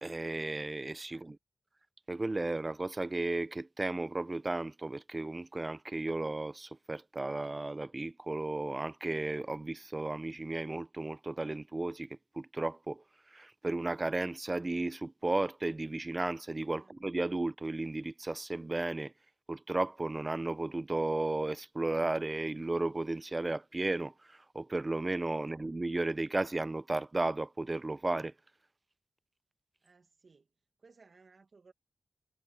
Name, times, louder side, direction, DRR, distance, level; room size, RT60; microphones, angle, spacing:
voice 1, 0.0-1.4 2.1-13.0 13.3-19.1 19.5-28.3, right 2 dB, 30° right, 0.6 m, -34 dB
voice 2, 29.8-30.5 30.8-31.7, right 4 dB, 55° right, 1.8 m, -61 dB
cardioid pair, 60°, 0 cm